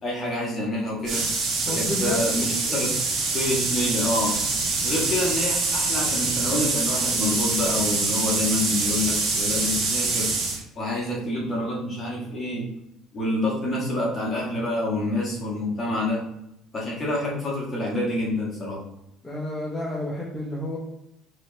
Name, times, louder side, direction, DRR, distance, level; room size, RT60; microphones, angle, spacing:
voice 1, 0.0-1.2 1.7-2.9 3.3-4.4 4.8-10.3 10.7-12.7 13.1-16.2 16.7-18.8, left 1 dB, 25° left, -5 dB, 1.5 m, -27 dB
sound 1, 1.0-10.6, right 3 dB, 45° right, 1.1 m, -25 dB
voice 2, 1.6-2.5 19.2-20.8, left 1 dB, 5° left, -5 dB, 0.7 m, -30 dB
4.6 x 3.1 x 2.9 m, 0.82 s
cardioid pair, 145°, 0 cm